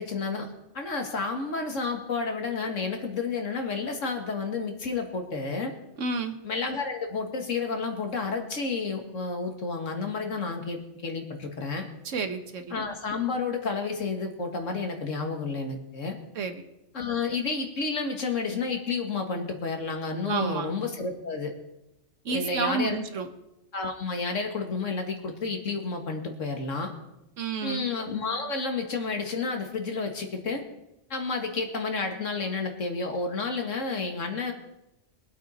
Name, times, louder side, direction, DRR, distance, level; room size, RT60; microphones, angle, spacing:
voice 1, 0.0-5.7 6.4-11.9 12.7-16.2 16.9-21.5 22.3-23.0 23.7-26.9 27.6-30.6 31.1-34.5, left 4 dB, 85° left, 4 dB, 2.1 m, -31 dB
voice 2, 6.0-6.4 12.0-12.7 16.3-16.6 20.2-20.7 22.2-23.3 27.4-27.9, right 4 dB, 85° right, 7 dB, 1.5 m, -30 dB
22.5 x 8.3 x 4.3 m, 0.89 s
omnidirectional pair, 1.3 m